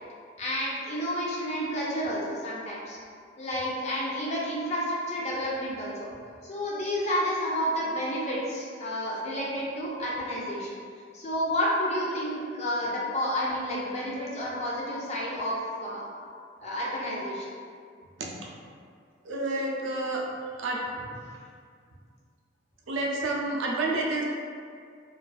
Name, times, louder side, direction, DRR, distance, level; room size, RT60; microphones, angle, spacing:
voice 1, 0.4-3.0 3.4-6.1 6.4-10.7 11.1-16.1 16.6-17.5, equal, 35° left, -5 dB, 0.4 m, -30 dB
voice 2, 19.2-20.2 20.6-21.2 22.9-24.2, right 2 dB, 70° right, -2 dB, 0.4 m, -29 dB
2.4 x 2.3 x 2.3 m, 2.1 s
head